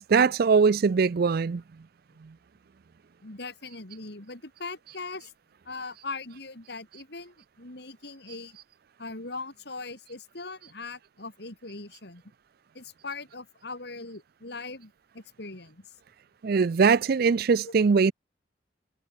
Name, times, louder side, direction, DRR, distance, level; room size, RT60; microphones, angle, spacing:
voice 1, 0.0-1.6 16.4-18.1, right 5 dB, 55° right, 0.4 m, -21 dB
voice 2, 3.2-5.3 5.6-8.6 9.0-12.2 12.7-15.9 17.7-17.8, left 3 dB, 60° left, 3.4 m, -40 dB
head